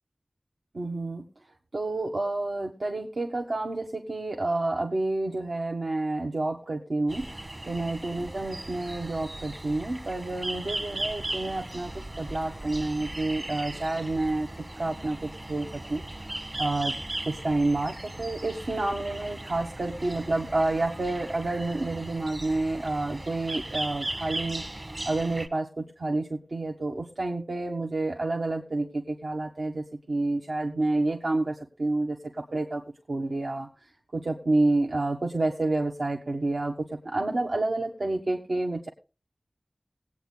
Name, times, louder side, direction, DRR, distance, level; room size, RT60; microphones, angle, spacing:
voice 1, 0.7-1.2 1.7-7.3 7.7-14.5 14.8-16.0 16.6-16.9 17.2-24.6 25.0-32.2 32.5-32.8 33.1-33.7 34.1-38.9, right 2 dB, 80° right, 0 dB, 1.5 m, -29 dB
sound 1, 7.1-25.5, right 1 dB, 40° right, 1.4 m, -37 dB
20.0 x 8.8 x 2.3 m, 0.32 s
wide cardioid pair, 50°, 0 cm